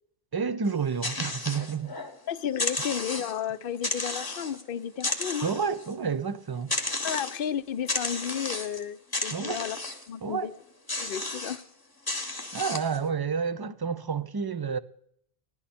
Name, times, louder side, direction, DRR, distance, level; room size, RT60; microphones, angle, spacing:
voice 1, 0.3-1.9 5.4-6.7 9.3-9.6 10.2-10.5 12.5-14.8, right 6 dB, 35° right, 0.4 m, -30 dB
sound 1, 0.7-2.2 2.5-3.4 3.8-4.6 5.0-5.9 6.7-7.5 7.9-8.8 9.1-10.1 10.9-11.6 12.1-13.0, left 2 dB, 20° left, 1.1 m, -33 dB
voice 2, 2.3-5.5 7.0-9.8 10.1-10.5 10.9-11.6, left 9 dB, 65° left, 0.8 m, -33 dB
16.0 x 11.5 x 4.2 m
omnidirectional pair, 1.1 m